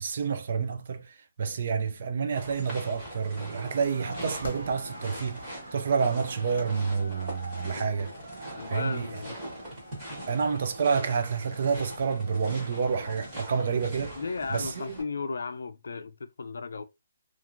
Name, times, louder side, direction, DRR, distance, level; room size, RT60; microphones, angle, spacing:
voice 1, 0.0-8.1 8.7-9.2 10.3-14.2 14.5-15.0, right 5 dB, 40° right, 0.3 m, -29 dB
sound 1, 2.3-15.0, right 1 dB, 10° right, 1.1 m, -42 dB
sound 2, 3.7-10.6, right 3 dB, 80° right, 0.6 m, -46 dB
sound 3, 4.0-14.0, left 3 dB, 45° left, 0.8 m, -47 dB
voice 2, 7.7-8.0 8.5-9.4 10.2-10.4 14.1-16.8, left 4 dB, 70° left, 0.4 m, -35 dB
2.9 x 2.4 x 2.5 m
hypercardioid pair, 180°, 0 cm